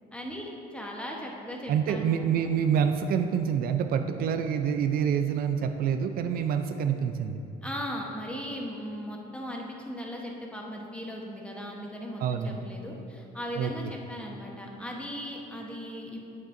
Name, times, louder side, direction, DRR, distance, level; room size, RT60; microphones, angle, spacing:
voice 1, 0.1-2.5 7.6-16.2, equal, 5° left, -1 dB, 1.0 m, -38 dB
voice 2, 1.7-7.4 12.2-12.6 13.6-13.7, right 8 dB, 60° right, 8 dB, 0.4 m, -27 dB
8.3 x 7.4 x 2.6 m, 2.7 s
cardioid pair, 110°, 17 cm